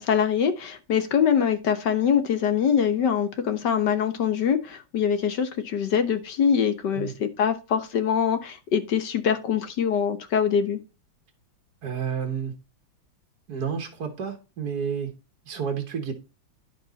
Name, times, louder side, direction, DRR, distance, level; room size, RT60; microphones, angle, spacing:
voice 1, 0.0-10.8, left 7 dB, 65° left, 1.6 m, -24 dB
voice 2, 11.8-12.5 13.5-15.1 15.4-16.1, right 7 dB, 55° right, 1.8 m, -30 dB
10.5 x 6.6 x 4.0 m
omnidirectional pair, 2.1 m